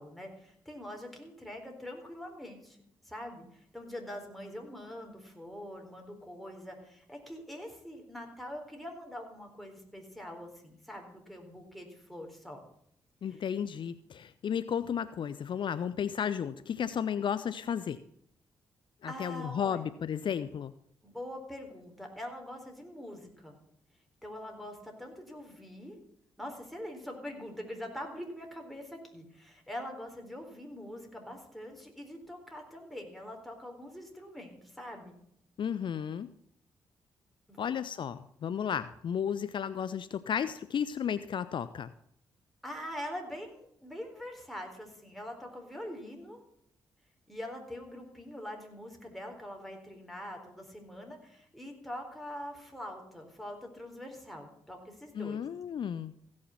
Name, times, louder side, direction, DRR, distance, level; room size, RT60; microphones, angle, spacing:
voice 1, 0.0-2.8 3.0-12.6 13.3-13.4 19.1-19.8 21.0-23.6 24.2-26.0 26.4-35.2 37.5-37.6 42.6-46.4 47.3-55.4, left 1 dB, ahead, 2 dB, 3.9 m, -44 dB
voice 2, 13.2-18.0 19.0-20.7 35.6-36.3 37.6-41.9 55.2-56.1, left 8 dB, 60° left, 14 dB, 0.5 m, -33 dB
16.0 x 6.4 x 5.8 m, 0.71 s
supercardioid pair, 50°, 9 cm